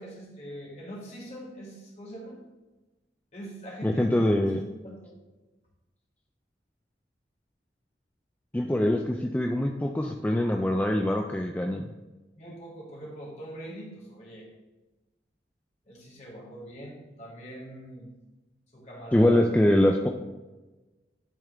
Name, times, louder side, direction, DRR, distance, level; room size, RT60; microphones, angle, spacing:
voice 1, 0.0-2.4 3.3-4.1 4.4-4.6 5.0-5.1 12.4-14.5 15.9-18.1 18.7-19.4, equal, 40° left, -4 dB, 2.3 m, -42 dB
voice 2, 3.8-4.6 8.5-11.8 19.1-20.1, left 1 dB, 10° left, 1 dB, 0.3 m, -23 dB
10.5 x 3.6 x 3.4 m, 1.1 s
head